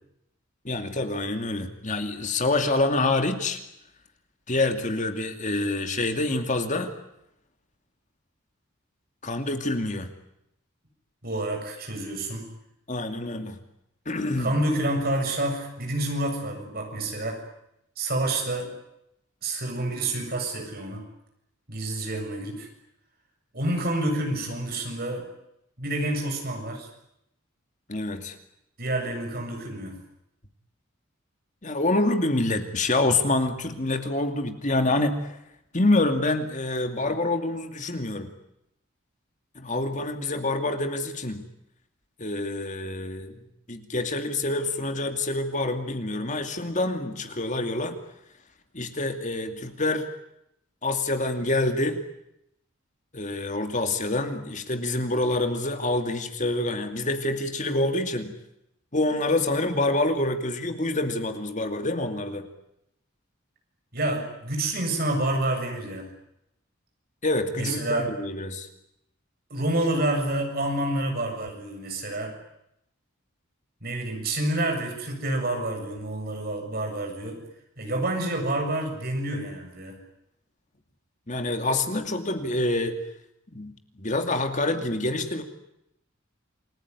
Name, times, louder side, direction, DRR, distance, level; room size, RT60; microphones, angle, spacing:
voice 1, 0.6-3.6 4.5-6.9 9.2-10.1 12.9-13.6 14.1-14.5 27.9-28.3 31.6-35.4 35.7-38.3 39.6-41.4 42.2-43.4 43.7-48.0 48.7-50.1 50.8-52.0 53.1-58.3 58.9-62.5 67.2-68.7 81.3-83.0 83.5-85.4, left 2 dB, 35° left, 6 dB, 2.5 m, -26 dB
voice 2, 11.2-12.5 14.4-17.4 18.0-18.7 19.4-21.0 21.7-22.7 23.5-25.2 25.8-26.9 28.8-30.0 63.9-66.1 67.5-68.1 69.5-72.4 73.8-77.4 77.8-80.0, right 1 dB, 45° right, 3 dB, 7.6 m, -28 dB
29.0 x 20.5 x 9.8 m, 0.80 s
head